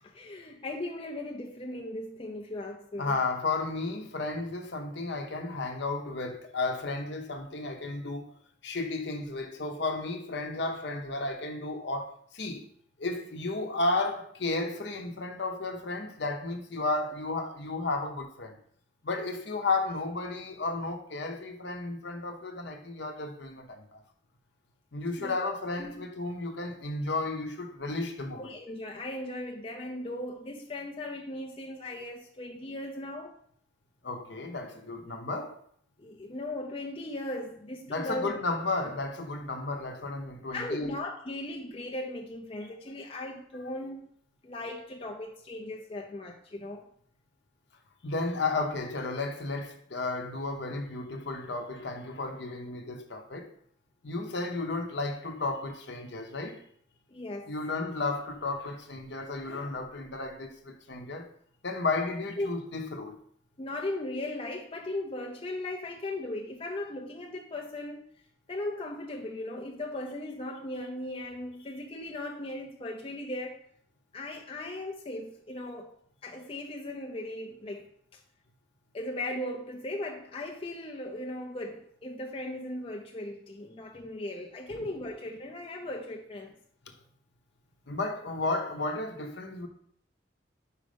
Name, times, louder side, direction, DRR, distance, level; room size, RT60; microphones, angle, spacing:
voice 1, 0.0-3.2 25.2-25.5 25.8-25.9 28.3-33.4 36.0-38.4 40.5-44.1 44.4-46.9 57.1-57.5 62.4-62.5 63.6-68.0 68.5-73.6 74.1-75.9 76.2-78.2 78.9-86.5, left 1 dB, 30° left, 0.5 m, -37 dB
voice 2, 3.0-8.2 8.6-12.6 13.0-18.6 19.0-24.0 24.9-28.6 34.0-35.6 37.9-40.9 48.0-53.5 54.0-56.6 57.5-61.3 61.6-63.2 87.9-89.7, left 3 dB, 60° left, 0.8 m, -33 dB
5.1 x 4.8 x 5.0 m
head